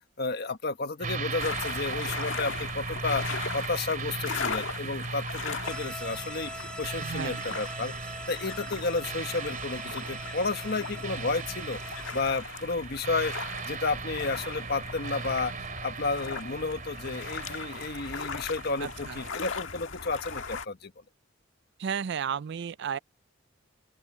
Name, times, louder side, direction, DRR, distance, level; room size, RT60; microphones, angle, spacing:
voice 1, 0.2-3.3 3.5-6.5 6.8-7.9 8.3-11.8 12.1-13.3 13.6-15.5 15.8-20.9, left 3 dB, 55° left, 1.5 m, -32 dB
sound 1, 1.0-19.3, right 4 dB, 45° right, 2.6 m, -38 dB
sound 2, 1.4-20.7, left 5 dB, 85° left, 1.7 m, -39 dB
sound 3, 5.6-12.2, left 1 dB, 5° left, 0.8 m, -44 dB
voice 2, 7.0-7.4 18.8-19.2 21.8-23.0, right 7 dB, 65° right, 0.4 m, -33 dB
open air
head